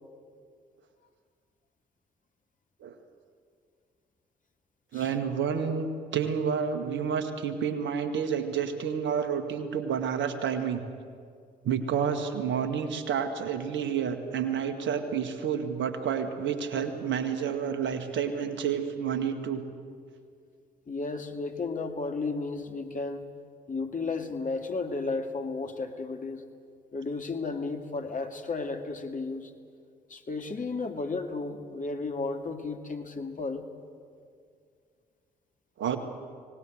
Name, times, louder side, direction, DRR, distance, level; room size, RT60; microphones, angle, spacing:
voice 1, 4.9-5.9 6.1-10.8 11.6-19.6 35.8-36.0, right 7 dB, 65° right, 9 dB, 2.1 m, -29 dB
voice 2, 20.9-23.3 23.7-26.4 26.9-29.5 30.1-33.7, left 3 dB, 40° left, 5 dB, 2.5 m, -33 dB
24.5 x 19.0 x 7.9 m, 2.2 s
hypercardioid pair, 45°, 20 cm